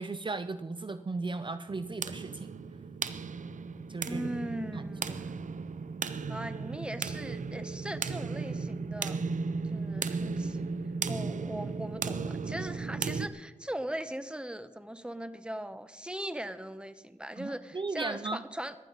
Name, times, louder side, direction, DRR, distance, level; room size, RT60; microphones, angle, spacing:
voice 1, 0.0-2.5 3.9-4.2 4.7-4.8 17.4-18.4, right 3 dB, 40° right, 11 dB, 0.6 m, -36 dB
sound 1, 1.7-13.3, right 4 dB, 85° right, 0.6 m, -35 dB
voice 2, 4.1-5.3 6.3-9.2 9.6-10.7 11.1-18.7, right 1 dB, 10° right, 11 dB, 1.0 m, -39 dB
18.0 x 12.0 x 4.1 m, 1.1 s
cardioid pair, 50°, 13 cm